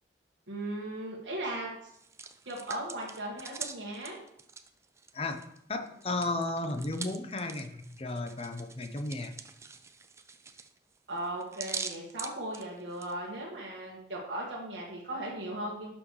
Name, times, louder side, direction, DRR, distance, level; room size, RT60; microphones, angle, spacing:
voice 1, 0.5-1.7 2.4-4.2 11.1-15.9, right 1 dB, 80° right, -5 dB, 1.5 m, -37 dB
Hands, 1.9-5.6 5.9-13.1, right 5 dB, 15° right, 0.4 m, -43 dB
voice 2, 5.7-9.4, left 2 dB, 30° left, 7 dB, 0.7 m, -34 dB
11.5 x 6.1 x 3.2 m, 0.75 s
head